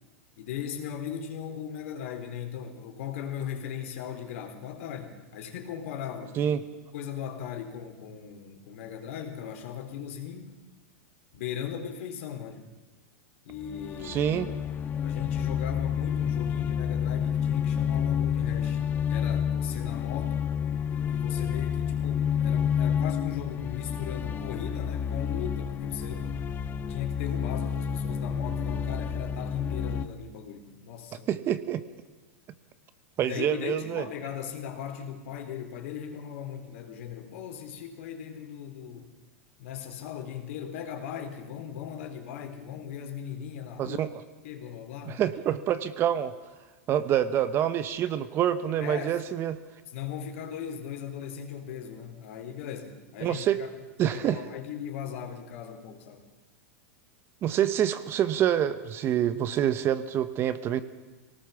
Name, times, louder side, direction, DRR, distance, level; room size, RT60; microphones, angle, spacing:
voice 1, 0.4-6.5 6.9-10.5 11.3-12.7 13.4-14.2 15.0-18.8 19.1-20.5 21.1-26.3 26.9-31.3 33.2-39.1 39.6-44.0 44.4-45.3 48.8-49.2 49.9-53.7 54.1-56.3, left 8 dB, 70° left, 4 dB, 4.0 m, -38 dB
sound 1, 13.5-30.1, left 8 dB, 25° left, 0.9 m, -29 dB
voice 2, 14.0-14.5 31.3-31.8 33.2-34.0 43.8-44.1 45.1-46.3 46.9-49.6 53.2-53.6 54.0-54.4 57.4-60.8, right 10 dB, 35° right, 13 dB, 1.1 m, -26 dB
23.5 x 18.5 x 7.2 m, 1.2 s
supercardioid pair, 135°, 7 cm